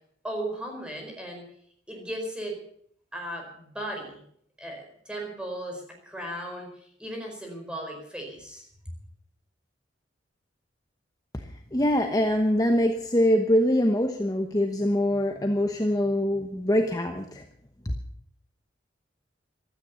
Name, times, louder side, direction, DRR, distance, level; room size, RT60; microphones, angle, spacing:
voice 1, 0.2-1.4 1.9-2.6 3.1-4.2 4.6-8.7, right 1 dB, 5° right, 1 dB, 4.7 m, -36 dB
voice 2, 11.7-17.4 17.8-18.0, equal, 20° left, 4 dB, 1.0 m, -24 dB
16.0 x 13.0 x 7.0 m, 0.66 s
head